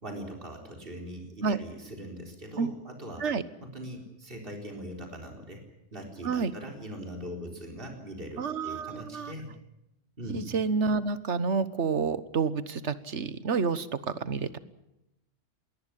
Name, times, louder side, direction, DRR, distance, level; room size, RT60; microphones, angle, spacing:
voice 1, 0.0-3.2 3.6-5.6 5.9-9.5 10.2-10.4, equal, 50° right, 2 dB, 4.4 m, -41 dB
voice 2, 8.4-9.3 10.3-14.6, right 5 dB, 70° right, 14 dB, 1.5 m, -29 dB
21.0 x 18.5 x 10.0 m, 0.89 s
omnidirectional pair, 1.2 m